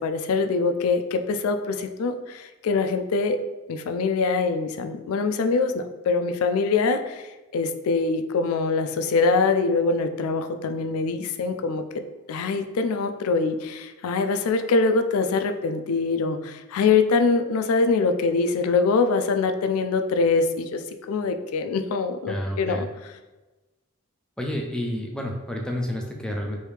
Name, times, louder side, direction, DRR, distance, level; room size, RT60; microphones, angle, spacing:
voice 1, 0.0-3.4 3.7-7.3 7.5-11.8 12.3-20.8 21.1-22.8, left 4 dB, 75° left, 7 dB, 0.3 m, -23 dB
voice 2, 22.3-22.9 24.4-26.6, equal, 5° left, 0 dB, 0.4 m, -30 dB
3.2 x 2.6 x 3.2 m, 1.1 s
head